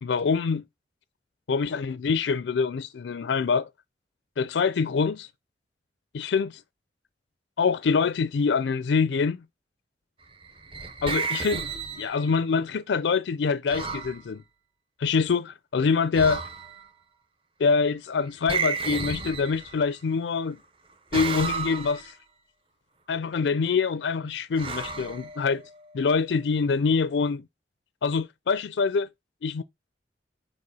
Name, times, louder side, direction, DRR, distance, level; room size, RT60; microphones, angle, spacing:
voice 1, 0.0-0.6 1.5-3.7 4.4-5.3 6.1-6.6 7.6-9.4 11.0-11.6 12.0-14.4 15.0-16.4 17.6-20.6 21.1-22.1 23.1-25.6 25.9-27.4 28.0-29.1 29.4-29.6, left 5 dB, 85° left, 0.4 m, -25 dB
sound 1, 10.4-12.4 13.7-14.2 16.1-16.9 18.5-20.0 21.1-22.1 24.6-25.8, right 4 dB, 30° right, 0.9 m, -32 dB
5.0 x 4.8 x 4.0 m
head